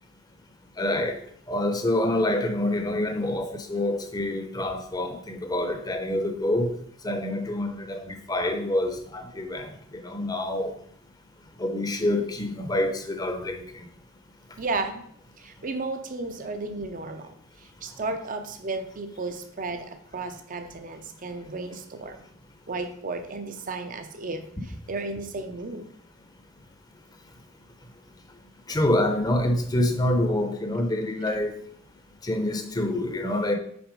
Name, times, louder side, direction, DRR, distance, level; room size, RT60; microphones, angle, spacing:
voice 1, 0.8-1.2 1.5-6.7 7.0-10.7 11.6-13.6 28.7-31.6 32.2-33.6, left 1 dB, 20° left, 7 dB, 0.8 m, -26 dB
voice 2, 14.6-15.0 15.4-17.3 17.6-22.2 22.7-25.9, right 3 dB, 40° right, 6 dB, 0.7 m, -33 dB
6.0 x 4.5 x 5.2 m, 0.64 s
head